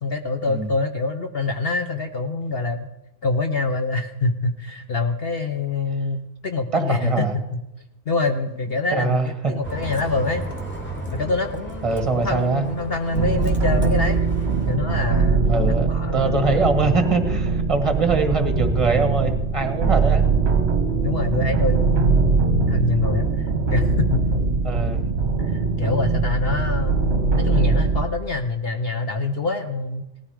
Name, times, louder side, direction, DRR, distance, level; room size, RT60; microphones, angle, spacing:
voice 1, 0.0-2.9 3.2-7.6 8.1-10.4 11.1-14.2 14.7-16.7 21.0-24.4 25.4-30.1, left 3 dB, 50° left, 6 dB, 0.9 m, -25 dB
voice 2, 6.7-7.3 8.9-9.5 11.8-12.6 15.4-20.3 24.6-25.1, right 4 dB, 20° right, 6 dB, 1.6 m, -23 dB
Bus, 9.6-14.8, right 1 dB, 5° left, 2.1 m, -33 dB
sound 1, 13.1-28.1, right 4 dB, 45° right, 1.3 m, -21 dB
18.0 x 13.5 x 4.8 m, 0.94 s
omnidirectional pair, 1.6 m